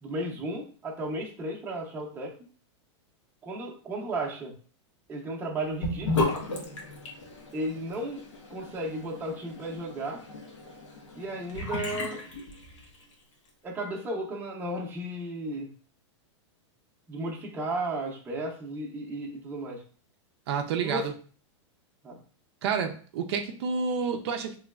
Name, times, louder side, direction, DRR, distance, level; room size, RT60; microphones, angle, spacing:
voice 1, 0.0-2.3 3.4-4.5 5.1-6.3 7.5-8.2 8.5-10.2 11.1-12.2 13.6-15.7 17.1-19.8 20.8-21.1 22.0-22.2, right 1 dB, 15° right, -2 dB, 0.6 m, -34 dB
Sink (filling or washing) / Bathtub (filling or washing), 5.8-13.1, left 3 dB, 90° left, 1.1 m, -34 dB
voice 2, 20.5-21.0 22.6-24.6, right 6 dB, 60° right, 4 dB, 0.5 m, -29 dB
3.9 x 3.1 x 2.3 m, 0.42 s
supercardioid pair, 155°, 16 cm